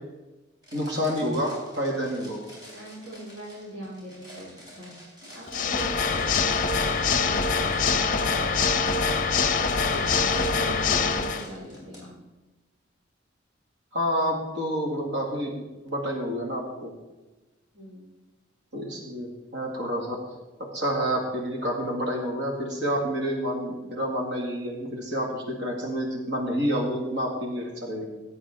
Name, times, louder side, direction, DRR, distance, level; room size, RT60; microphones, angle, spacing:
sound 1, 0.6-12.0, equal, 20° right, 4.1 m, -48 dB
voice 1, 0.7-2.4 10.2-10.3 13.9-15.5 15.8-16.9 18.7-20.2 20.6-28.1, equal, 60° right, 0 dB, 2.2 m, -29 dB
voice 2, 2.7-12.2 17.7-18.1, equal, 75° right, -6 dB, 2.9 m, -40 dB
Water / Mechanisms, 5.5-11.5, left 5 dB, 45° left, 0.6 m, -24 dB
16.0 x 8.3 x 3.7 m, 1.1 s
head